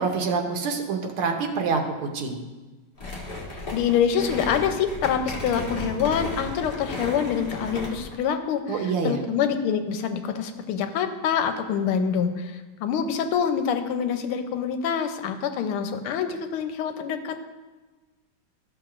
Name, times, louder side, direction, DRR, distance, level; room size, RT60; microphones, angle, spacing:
voice 1, 0.0-1.8 2.1-2.4 8.7-9.2, right 5 dB, 90° right, 4 dB, 1.8 m, -26 dB
sound 1, 3.0-8.2, left 1 dB, 30° left, 1.3 m, -34 dB
voice 2, 3.5-17.3, left 7 dB, 90° left, 8 dB, 1.5 m, -26 dB
13.0 x 6.2 x 2.4 m, 1.2 s
omnidirectional pair, 2.3 m